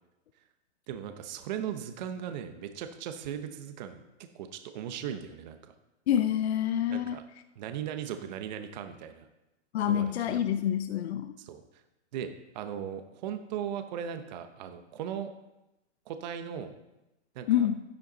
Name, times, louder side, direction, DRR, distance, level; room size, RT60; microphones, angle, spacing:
voice 1, 0.9-4.0 4.3-5.7 6.9-7.2 7.6-9.3 9.8-10.4 11.4-11.8 12.1-15.3 16.1-16.7 17.3-17.7, right 9 dB, 40° right, 7 dB, 0.9 m, -38 dB
voice 2, 6.1-7.2 9.7-11.4 17.5-17.8, left 10 dB, 65° left, 10 dB, 0.7 m, -27 dB
11.5 x 10.5 x 4.0 m, 0.96 s
hypercardioid pair, 155°, 35 cm